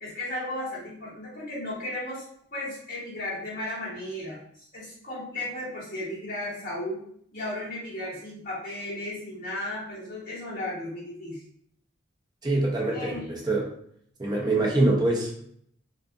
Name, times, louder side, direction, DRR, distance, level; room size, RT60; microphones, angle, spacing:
voice 1, 0.0-2.2 2.5-7.0 7.3-11.4 12.9-13.3, left 1 dB, 45° left, -11 dB, 1.0 m, -35 dB
voice 2, 12.4-13.7 14.2-15.4, right 2 dB, 20° right, -2 dB, 0.6 m, -24 dB
2.4 x 2.4 x 2.5 m, 0.65 s
head